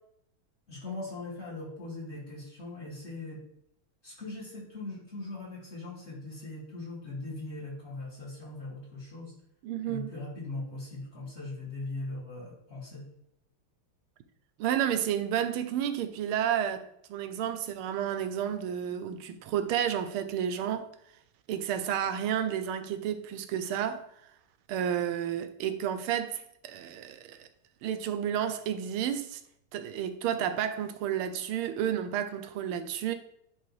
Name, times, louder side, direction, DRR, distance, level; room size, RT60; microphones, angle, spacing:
voice 1, 0.7-3.4 4.0-9.3 9.8-13.1, left 2 dB, 30° left, 2.7 m, -40 dB
voice 2, 9.6-10.1 14.6-20.9 21.5-24.0 24.7-27.5 27.8-29.4 29.7-33.1, right 9 dB, 85° right, 1.5 m, -31 dB
10.5 x 3.7 x 3.2 m
omnidirectional pair, 2.4 m